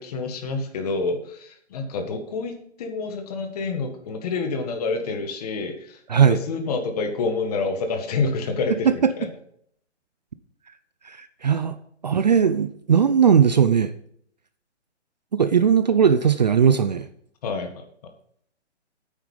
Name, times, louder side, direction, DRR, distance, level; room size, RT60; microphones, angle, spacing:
voice 1, 0.0-9.3 17.4-17.8, left 3 dB, 35° left, 6 dB, 1.8 m, -28 dB
voice 2, 11.0-11.8 12.0-13.9 15.3-17.1, right 7 dB, 40° right, 12 dB, 0.5 m, -18 dB
9.1 x 8.2 x 5.5 m, 0.66 s
hypercardioid pair, 160°, 36 cm